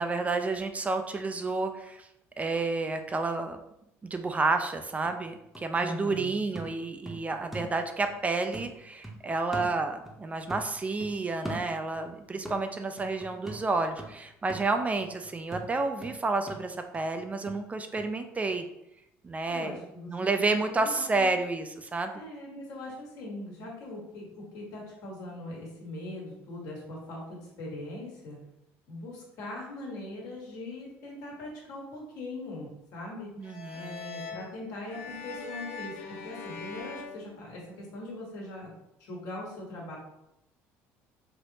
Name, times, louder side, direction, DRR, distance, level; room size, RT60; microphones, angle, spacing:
voice 1, 0.0-2.1 2.4-3.6 4.1-18.6 19.2-19.8 20.1-22.2 33.4-34.0, right 3 dB, 25° right, 6 dB, 0.3 m, -30 dB
sound 1, 5.0-8.2 8.5-10.2 10.5-12.1 12.4-18.1 18.4-18.5, right 1 dB, ahead, 0.7 m, -43 dB
voice 2, 5.8-6.3 19.5-21.3 22.1-28.4 28.9-33.3 33.7-38.7 39.0-40.0, left 1 dB, 70° left, -3 dB, 1.4 m, -41 dB
sound 2, 33.4-38.0, left 4 dB, 85° left, 0.7 m, -42 dB
3.4 x 2.8 x 2.7 m, 0.82 s
supercardioid pair, 85°, 6 cm